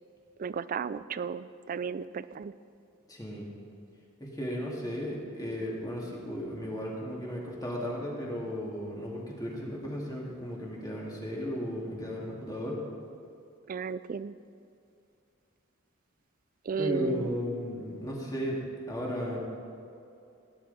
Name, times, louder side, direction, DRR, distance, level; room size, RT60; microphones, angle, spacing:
voice 1, 0.4-2.5 13.7-14.4 16.7-17.4, right 6 dB, 40° right, 16 dB, 0.3 m, -34 dB
voice 2, 3.1-3.5 4.2-12.8 16.8-18.6 18.9-19.4, equal, 20° left, -4 dB, 2.4 m, -35 dB
17.0 x 10.5 x 4.2 m, 2.6 s
head